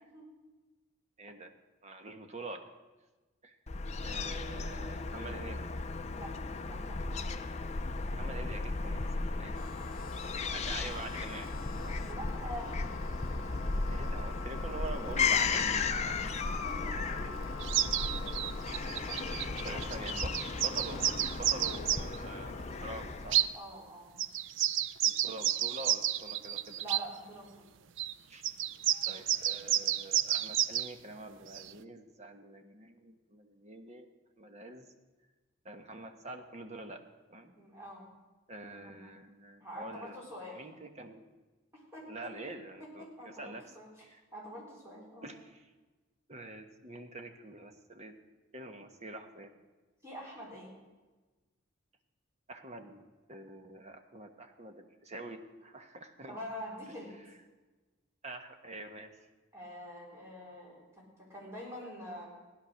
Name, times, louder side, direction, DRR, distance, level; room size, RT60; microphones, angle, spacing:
voice 1, 1.2-1.5 1.8-2.7 3.4-3.6 4.0-5.7 8.2-9.6 10.5-11.6 11.8-12.0 13.9-16.4 19.2-20.3 20.6-23.4 25.0-26.8 28.3-28.4 29.1-34.1 34.4-34.9 35.6-37.0 37.3-37.5 38.5-40.1 40.5-41.2 42.1-43.7 44.1-44.2 45.2-45.6 46.3-48.2 48.5-49.5 52.5-56.4 58.2-59.2, right 2 dB, 35° right, 6 dB, 1.2 m, -46 dB
Fowl / Gull seagull, 3.7-23.5, left 4 dB, 30° left, 0.6 m, -35 dB
voice 2, 6.7-7.3 9.7-10.1 12.1-12.8 16.6-17.3 17.9-18.1 19.1-20.2 23.5-24.1 26.8-27.7 37.6-38.1 38.7-39.1 39.6-40.6 41.7-42.3 42.8-43.9 44.3-45.3 50.0-50.7 56.3-57.1 59.5-62.3, equal, 15° right, -4 dB, 4.0 m, -46 dB
sound 1, 9.5-21.8, left 3 dB, 70° left, 1.0 m, -49 dB
sound 2, 17.6-22.2 23.3-23.5 24.2-27.0 28.0-28.1 28.4-30.9 31.5-31.7, right 11 dB, 65° right, 0.5 m, -31 dB
16.0 x 10.5 x 6.3 m, 1.2 s
head